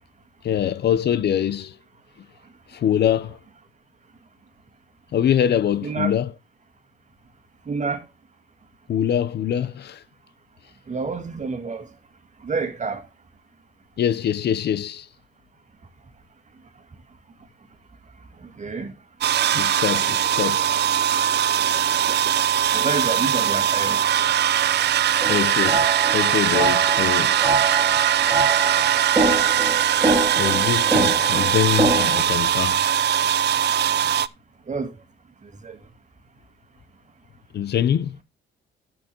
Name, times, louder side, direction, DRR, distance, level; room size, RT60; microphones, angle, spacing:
voice 1, 0.4-1.8 2.7-3.4 5.1-6.3 8.9-10.0 14.0-15.1 19.5-20.6 25.3-27.3 29.7-32.8 37.5-38.2, left 9 dB, 55° left, 0.6 m, -24 dB
voice 2, 5.8-6.1 7.7-8.0 10.9-11.9 12.4-13.1 18.6-18.9 22.7-24.0 34.7-34.9 35.6-35.8, right 4 dB, 35° right, 2.0 m, -28 dB
sound 1, 19.2-34.3, right 10 dB, 60° right, 0.5 m, -21 dB
sound 2, 25.2-32.2, right 3 dB, 20° right, 3.4 m, -25 dB
12.5 x 7.8 x 3.0 m
cardioid pair, 90°, 20 cm